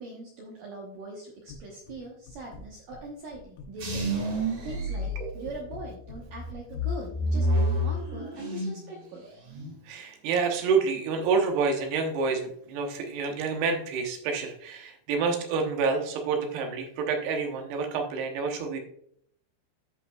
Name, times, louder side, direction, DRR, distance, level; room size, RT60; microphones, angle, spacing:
voice 1, 0.0-9.3, right 2 dB, 90° right, -2 dB, 1.8 m, -42 dB
sound 1, 1.5-2.0 2.3-3.0 3.3-4.1 4.4-6.9, left 2 dB, 80° left, 3.5 m, -45 dB
sound 2, 3.8-5.8 6.3-8.9 9.2-9.7, equal, 45° right, 2.4 m, -29 dB
voice 2, 9.9-18.8, right 5 dB, 70° right, 3 dB, 2.6 m, -28 dB
14.5 x 5.4 x 2.3 m, 0.68 s
omnidirectional pair, 5.8 m